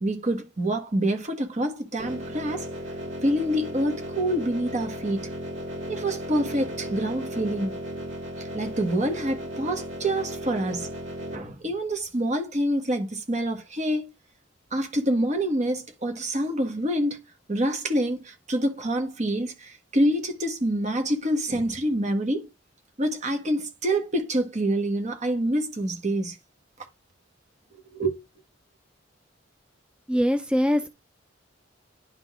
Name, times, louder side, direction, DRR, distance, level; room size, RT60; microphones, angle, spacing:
voice 1, 0.0-2.7 3.2-5.2 5.9-7.7 8.4-10.9 11.3-14.1 14.7-17.2 17.5-22.5 23.0-26.4 27.9-28.2, right 1 dB, 40° right, 1.4 m, -26 dB
sound 1, 2.0-11.3, right 1 dB, 85° right, 2.1 m, -35 dB
voice 2, 30.1-30.9, equal, 5° right, 0.4 m, -22 dB
10.5 x 3.9 x 3.6 m
head